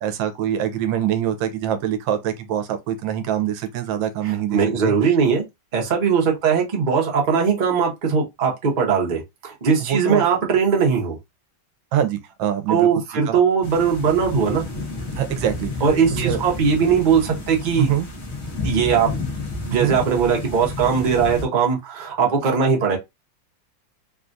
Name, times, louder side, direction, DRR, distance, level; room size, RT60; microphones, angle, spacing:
voice 1, 0.0-5.2 9.8-10.2 11.9-12.9 13.3-13.4 15.2-15.7 16.1-16.4 17.8-18.1 19.7-20.0, right 10 dB, 80° right, 1.3 m, -24 dB
voice 2, 4.2-5.4 5.7-11.2 12.7-14.6 15.8-17.9 18.6-19.1 19.6-23.0, right 6 dB, 40° right, 0.6 m, -20 dB
sound 1, 13.6-21.5, left 3 dB, 50° left, 0.8 m, -31 dB
3.5 x 2.3 x 2.5 m
omnidirectional pair, 2.1 m